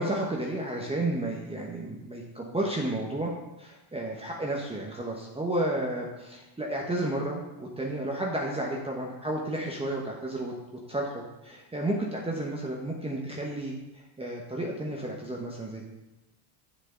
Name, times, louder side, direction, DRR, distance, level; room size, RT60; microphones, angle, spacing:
voice 1, 0.0-3.3 3.6-10.5 10.9-15.9, right 1 dB, 10° right, -2 dB, 1.1 m, -32 dB
7.4 x 6.8 x 3.9 m, 1.0 s
cardioid pair, 100°, 48 cm